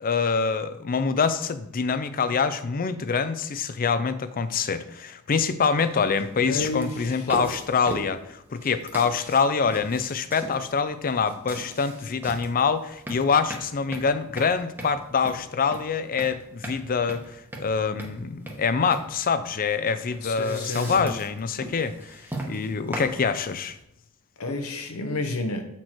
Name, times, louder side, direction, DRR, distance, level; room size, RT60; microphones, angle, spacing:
voice 1, 0.0-23.8, left 5 dB, 40° left, 12 dB, 0.5 m, -25 dB
sound 1, 5.8-23.8, right 1 dB, 10° right, 1.0 m, -39 dB
voice 2, 6.4-7.3 20.2-21.1 24.4-25.6, left 2 dB, 65° left, 5 dB, 0.8 m, -30 dB
7.7 x 4.4 x 4.5 m, 0.80 s
head